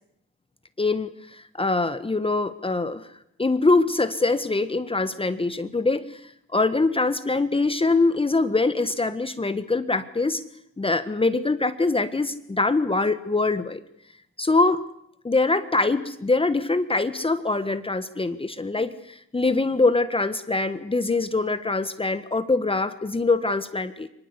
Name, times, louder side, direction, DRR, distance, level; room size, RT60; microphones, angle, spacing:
voice 1, 0.8-3.1 3.4-6.2 6.5-10.4 10.8-13.8 14.4-14.8 15.2-24.1, left 3 dB, 20° left, 11 dB, 1.4 m, -23 dB
24.0 x 21.0 x 8.3 m, 0.75 s
cardioid pair, 90°, 30 cm